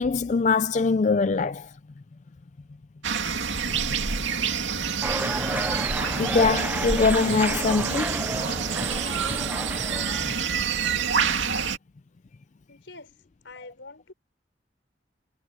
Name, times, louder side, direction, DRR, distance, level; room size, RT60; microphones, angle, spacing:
voice 1, 0.0-1.6 6.2-8.1, left 4 dB, 40° left, 0.4 m, -22 dB
sound 1, 3.0-11.8, right 6 dB, 80° right, 2.4 m, -27 dB
sound 2, 5.0-10.3, right 2 dB, 10° right, 0.6 m, -32 dB
voice 2, 10.7-11.2 12.7-13.1 13.4-14.1, left 3 dB, 75° left, 4.2 m, -46 dB
head